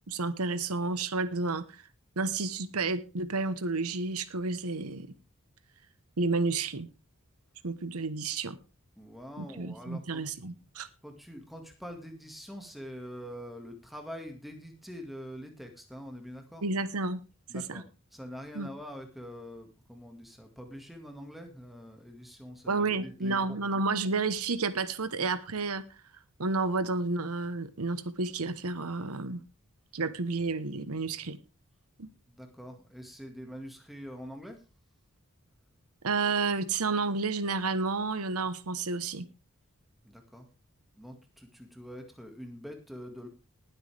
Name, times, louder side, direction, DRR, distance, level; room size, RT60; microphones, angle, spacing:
voice 1, 0.1-1.8 2.2-5.1 6.2-6.9 7.6-8.6 9.4-10.9 16.6-17.2 17.5-17.8 18.5-18.7 22.7-25.8 26.4-29.4 29.9-31.4 32.0-32.1 36.0-39.3, right 3 dB, 85° right, 1.1 m, -31 dB
voice 2, 9.0-10.2 11.0-16.6 17.5-23.7 32.3-34.6 40.0-40.5 40.9-43.3, equal, ahead, 1.9 m, -45 dB
19.5 x 8.0 x 3.4 m
head